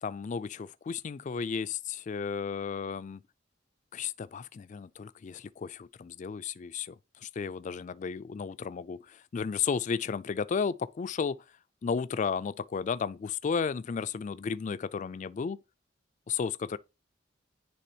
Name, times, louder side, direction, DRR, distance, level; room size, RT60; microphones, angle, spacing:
voice 1, 0.0-3.2 3.9-7.0 7.2-11.4 11.8-15.6 16.3-16.8, left 6 dB, 40° left, 0.3 m, -33 dB
10.0 x 3.4 x 2.8 m
head